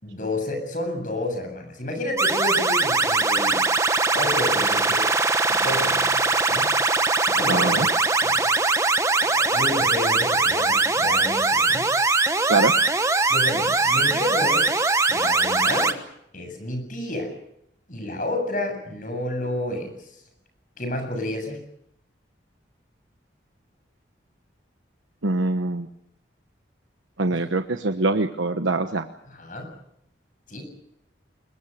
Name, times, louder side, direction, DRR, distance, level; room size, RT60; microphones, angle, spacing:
voice 1, 0.0-3.6 4.1-5.1 5.5-6.7 7.3-7.9 8.2-8.5 9.2-11.9 13.3-14.7 15.1-16.0 16.3-17.3 17.9-20.1 20.8-21.6 27.3-27.4 29.3-29.7 30.5-30.6, left 1 dB, 45° left, 6 dB, 7.8 m, -30 dB
sound 1, 2.2-15.9, right 3 dB, 15° right, 1.2 m, -21 dB
voice 2, 7.5-7.9 12.5-12.7 25.2-25.9 27.2-29.1, right 2 dB, 90° right, 7 dB, 1.1 m, -23 dB
25.5 x 22.5 x 6.8 m, 0.74 s
head